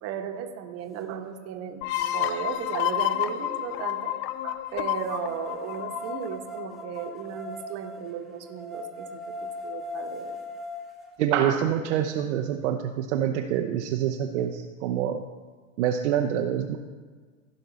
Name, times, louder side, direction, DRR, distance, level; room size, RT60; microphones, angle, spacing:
voice 1, 0.0-1.8 2.1-4.1 4.4-10.4 11.4-11.6, right 8 dB, 35° right, 5 dB, 1.2 m, -35 dB
sound 1, 1.3-1.4 1.9-3.8 5.1-11.1, left 1 dB, ahead, 1.3 m, -40 dB
sound 2, 1.8-7.3, left 13 dB, 30° left, 0.5 m, -30 dB
voice 2, 11.2-15.2 15.8-16.8, right 9 dB, 55° right, 3 dB, 0.8 m, -26 dB
15.5 x 5.5 x 4.1 m, 1.5 s
hypercardioid pair, 95°, 41 cm